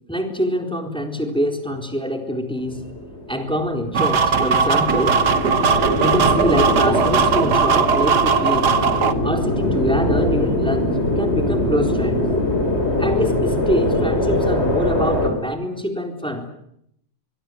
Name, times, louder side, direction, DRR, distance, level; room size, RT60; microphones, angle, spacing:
voice 1, 0.1-2.8 3.3-5.2 6.0-8.8 9.2-12.2 13.0-16.5, equal, ahead, 5 dB, 3.7 m, -24 dB
sound 1, 2.6-15.3, left 1 dB, 20° left, 4.2 m, -22 dB
sound 2, 3.9-9.1, right 6 dB, 65° right, 1.0 m, -18 dB
24.5 x 22.0 x 9.5 m, 0.75 s
omnidirectional pair, 3.7 m